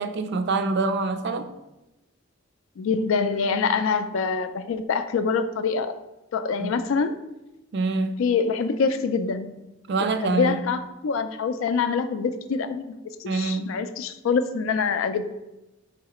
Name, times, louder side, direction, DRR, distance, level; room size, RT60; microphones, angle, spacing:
voice 1, 0.0-1.5 6.6-6.7 7.7-8.1 9.9-10.6 13.2-13.7, right 3 dB, 55° right, 9 dB, 0.4 m, -25 dB
voice 2, 2.8-5.9 6.3-7.2 8.2-9.5 10.2-12.9 13.2-15.2, left 5 dB, 80° left, 10 dB, 0.3 m, -25 dB
4.7 x 3.2 x 2.9 m, 0.98 s
head